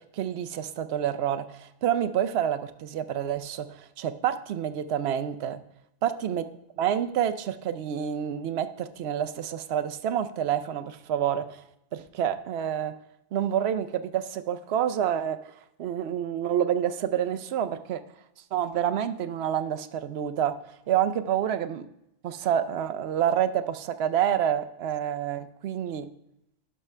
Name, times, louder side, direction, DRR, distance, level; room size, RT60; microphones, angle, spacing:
voice 1, 0.1-5.6 6.0-6.4 6.8-11.6 11.9-12.9 13.3-15.4 15.8-18.0 18.5-20.5 20.9-21.9 22.2-26.1, right 9 dB, 70° right, 12 dB, 0.8 m, -28 dB
11.0 x 6.0 x 3.2 m, 0.84 s
omnidirectional pair, 1.2 m